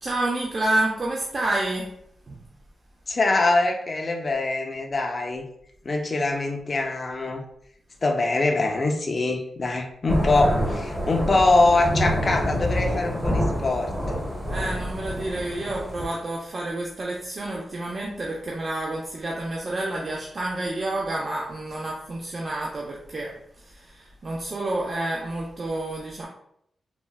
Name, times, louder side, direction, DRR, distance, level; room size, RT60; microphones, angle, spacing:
voice 1, 0.0-1.9 2.3-2.4 10.3-10.6 14.5-23.3 23.6-26.3, right 2 dB, 40° right, -3 dB, 0.4 m, -29 dB
voice 2, 3.1-5.4 5.9-7.4 8.0-13.9, left 2 dB, 35° left, 2 dB, 0.4 m, -23 dB
Thunder / Rain, 10.1-16.1, equal, 10° right, 0.7 m, -27 dB
3.5 x 2.0 x 2.2 m, 0.71 s
wide cardioid pair, 120°, 0 cm